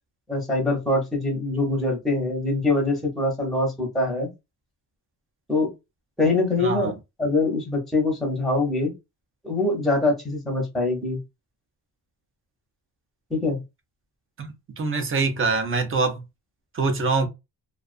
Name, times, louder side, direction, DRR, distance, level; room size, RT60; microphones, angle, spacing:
voice 1, 0.3-4.3 5.5-5.7 6.2-6.9 7.2-8.9 9.4-11.2 13.3-13.6, left 2 dB, ahead, 0.8 m, -23 dB
voice 2, 6.6-6.9 14.4-14.5 14.8-16.2 16.7-17.3, right 4 dB, 30° right, 0.5 m, -24 dB
2.3 x 2.3 x 2.4 m
wide cardioid pair, 155°, 42 cm